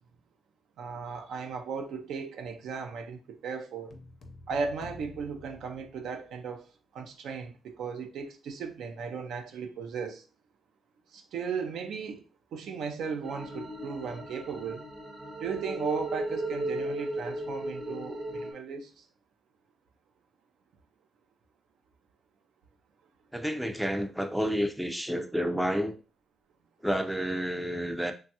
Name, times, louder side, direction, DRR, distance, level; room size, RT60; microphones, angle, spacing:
voice 1, 0.8-3.9 4.5-6.7 6.9-10.2 11.1-12.2 12.5-14.8 15.4-19.0, right 5 dB, 80° right, 0.4 m, -36 dB
sound 1, 3.9-6.4, left 3 dB, 60° left, 0.5 m, -50 dB
sound 2, 13.2-18.5, right 1 dB, 30° right, 0.7 m, -36 dB
voice 2, 23.3-26.0 26.8-28.1, equal, 5° right, 0.3 m, -30 dB
3.0 x 2.3 x 2.8 m
cardioid pair, 95°, 0 cm